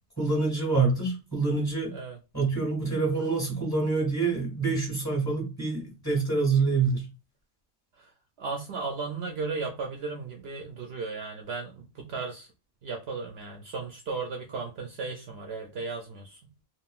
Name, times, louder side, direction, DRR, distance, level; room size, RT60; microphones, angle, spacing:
voice 1, 0.2-1.9 2.3-7.1, right 4 dB, 15° left, 1.4 m, -26 dB
voice 2, 8.4-12.5 12.8-16.4, right 4 dB, 65° right, 0.7 m, -35 dB
3.6 x 2.1 x 2.3 m
omnidirectional pair, 1.2 m